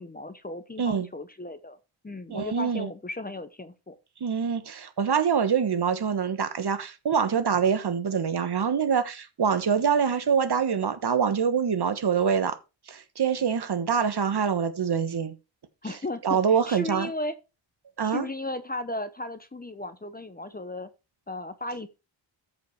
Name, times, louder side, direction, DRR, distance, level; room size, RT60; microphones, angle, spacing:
voice 1, 0.0-1.8 2.0-4.0 15.8-17.4 18.0-20.9 21.3-21.9, left 2 dB, 20° left, 0.8 m, -35 dB
voice 2, 2.3-2.9 4.2-12.6 12.9-15.3 16.2-17.1 18.0-18.3, right 7 dB, 55° right, 1.3 m, -25 dB
13.5 x 5.4 x 4.7 m
wide cardioid pair, 150°, 47 cm